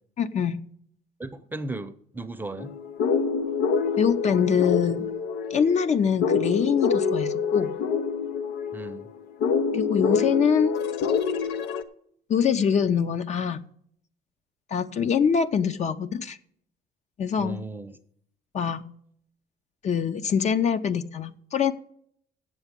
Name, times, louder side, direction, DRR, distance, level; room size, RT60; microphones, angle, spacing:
voice 1, 0.2-0.6 4.0-5.1 5.5-7.7 9.7-10.8 12.3-13.6 14.7-16.4 17.2-17.6 18.5-18.9 19.8-21.7, left 7 dB, 45° left, 10 dB, 0.6 m, -24 dB
voice 2, 1.2-2.7 8.7-9.1 17.4-18.0, right 2 dB, 10° right, 10 dB, 0.7 m, -36 dB
sound 1, 2.6-11.8, left 6 dB, 85° left, 0.8 m, -26 dB
8.1 x 7.1 x 8.0 m, 0.66 s
cardioid pair, 110°, 17 cm